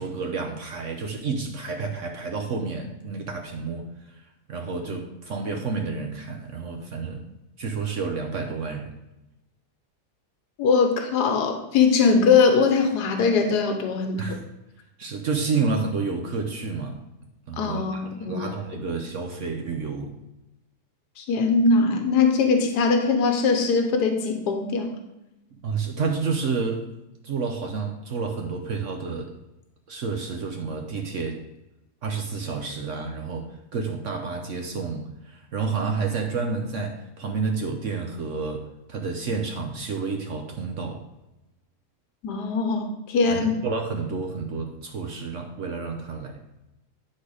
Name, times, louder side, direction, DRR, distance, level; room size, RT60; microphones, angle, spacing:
voice 1, 0.0-4.2 4.5-7.2 7.6-8.9 14.2-14.4 15.0-17.0 17.5-20.2 25.6-26.9 27.2-29.3 29.9-31.4 32.0-41.0 43.3-46.4, right 4 dB, 55° right, 3 dB, 1.1 m, -30 dB
voice 2, 10.6-14.4 17.6-18.5 21.2-24.9 42.2-43.5, left 4 dB, 85° left, 5 dB, 1.5 m, -21 dB
10.0 x 4.3 x 4.8 m, 0.94 s
omnidirectional pair, 1.7 m